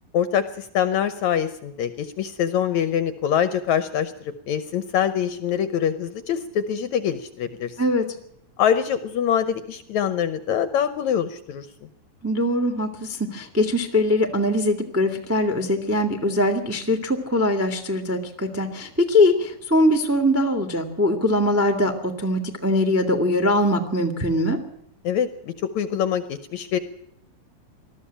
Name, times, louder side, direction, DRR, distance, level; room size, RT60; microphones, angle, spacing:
voice 1, 0.1-4.1 4.5-7.8 8.6-11.7 25.0-26.8, left 9 dB, 70° left, 13 dB, 1.9 m, -24 dB
voice 2, 12.2-24.6, left 1 dB, 10° right, 7 dB, 0.8 m, -22 dB
20.0 x 13.5 x 10.0 m, 0.72 s
omnidirectional pair, 4.1 m